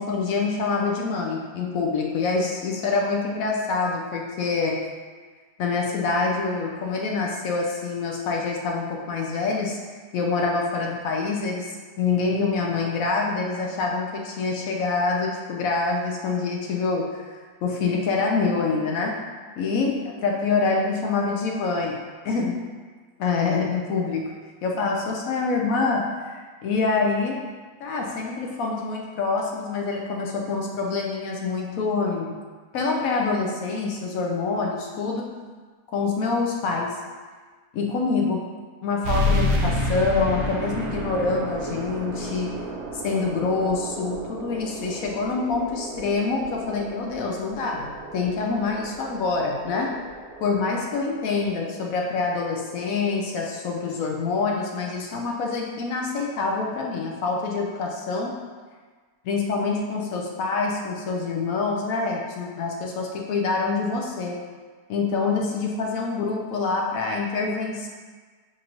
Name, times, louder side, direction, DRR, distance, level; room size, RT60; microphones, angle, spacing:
voice 1, 0.0-4.9 5.6-9.8 10.1-19.2 19.6-22.0 22.2-22.7 23.2-27.5 27.8-32.4 32.7-35.3 35.9-37.0 37.7-38.5 38.8-42.7 43.0-49.9 50.4-58.4 59.2-64.4 64.9-67.9, left 4 dB, 70° left, 0 dB, 0.9 m, -26 dB
sound 1, 39.0-54.1, equal, 75° right, 1.1 m, -31 dB
7.2 x 2.5 x 3.0 m, 1.5 s
omnidirectional pair, 1.6 m